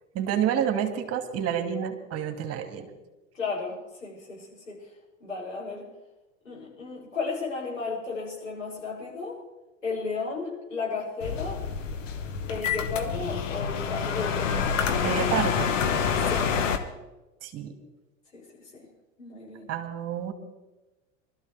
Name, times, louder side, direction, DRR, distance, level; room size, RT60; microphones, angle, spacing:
voice 1, 0.1-2.9 15.0-15.7 17.4-17.7 19.7-20.3, right 9 dB, 40° right, 6 dB, 2.3 m, -29 dB
voice 2, 3.3-4.8 5.2-5.9 6.4-9.4 9.8-11.7 12.5-14.6 16.3-16.5 18.3-18.4 18.7-18.9 19.2-19.7, left 4 dB, 90° left, -6 dB, 7.3 m, -34 dB
sound 1, 11.2-16.8, left 6 dB, 75° left, 1.5 m, -27 dB
24.5 x 13.5 x 3.5 m, 1.1 s
figure-of-eight pair, 85°, 38 cm